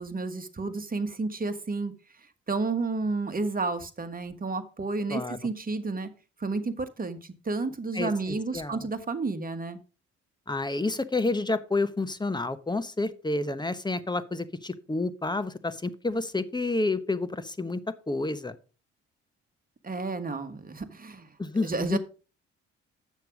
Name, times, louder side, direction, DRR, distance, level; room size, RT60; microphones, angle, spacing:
voice 1, 0.0-1.9 2.5-6.1 6.4-9.8 19.8-21.3 21.6-22.0, right 3 dB, 25° right, 9 dB, 1.5 m, -31 dB
voice 2, 7.9-8.9 10.5-17.8 18.1-18.6 21.4-22.0, left 2 dB, 15° left, 13 dB, 1.0 m, -29 dB
8.3 x 6.5 x 5.1 m, 0.35 s
hypercardioid pair, 55°, 32 cm